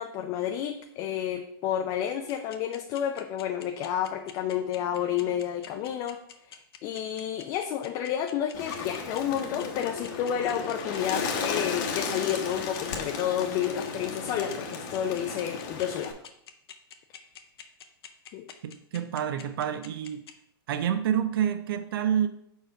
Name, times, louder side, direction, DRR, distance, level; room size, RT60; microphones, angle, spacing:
voice 1, 0.0-6.2 6.5-16.1 18.3-18.4, left 10 dB, 30° left, 0.4 m, -30 dB
sound 1, 2.3-20.3, left 9 dB, 75° left, 0.8 m, -46 dB
Bird, 8.5-16.1, left 5 dB, 50° left, 1.0 m, -34 dB
voice 2, 18.6-20.3 20.7-22.3, right 9 dB, 70° right, 0.5 m, -28 dB
4.9 x 4.5 x 4.4 m
hypercardioid pair, 140°, 13 cm